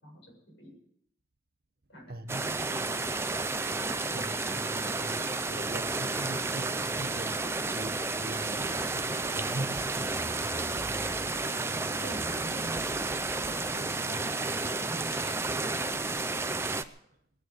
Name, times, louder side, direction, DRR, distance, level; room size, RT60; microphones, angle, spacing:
voice 1, 0.0-0.3 0.6-0.7 1.9-2.1 12.0-14.2 14.7-16.1, right 1 dB, 70° left, 7.8 m, -46 dB
voice 2, 2.1-2.9 4.1-10.6, right 2 dB, 55° right, 1.1 m, -41 dB
sound 1, 2.3-16.8, right 3 dB, 15° right, 0.5 m, -32 dB
sound 2, 8.4-15.1, right 1 dB, 35° right, 1.8 m, -46 dB
20.5 x 8.4 x 8.0 m
head